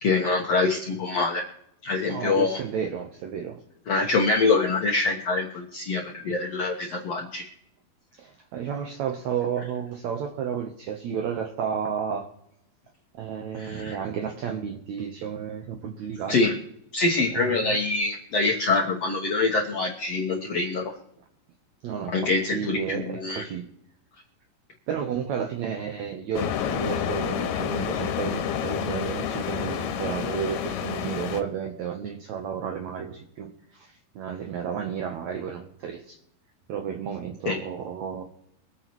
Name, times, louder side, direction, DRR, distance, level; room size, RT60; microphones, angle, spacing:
voice 1, 0.0-1.4 1.8-2.6 3.9-7.4 13.6-13.9 16.3-16.5 16.9-20.9 22.1-23.4 37.4-37.6, left 3 dB, 70° left, 1 dB, 1.5 m, -25 dB
voice 2, 2.1-3.6 8.2-12.3 13.2-16.5 17.3-17.8 21.8-23.7 24.9-36.2 36.7-38.2, right 7 dB, 75° right, 4 dB, 1.6 m, -32 dB
sound 1, 26.4-31.4, left 8 dB, 90° left, 3.1 m, -29 dB
24.0 x 9.1 x 3.1 m, 0.76 s
omnidirectional pair, 4.6 m